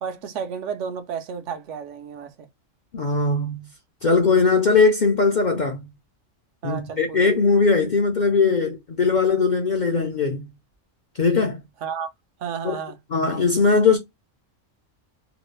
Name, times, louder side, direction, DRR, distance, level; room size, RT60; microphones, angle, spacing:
voice 1, 0.0-2.3 6.6-7.2 11.8-12.1 12.4-13.0, right 7 dB, 70° right, 0.9 m, -32 dB
voice 2, 2.9-3.7 4.0-5.9 6.6-10.5 11.2-11.6 12.6-12.8 13.1-14.0, left 4 dB, 55° left, 0.5 m, -20 dB
3.0 x 2.3 x 3.1 m
omnidirectional pair, 1.4 m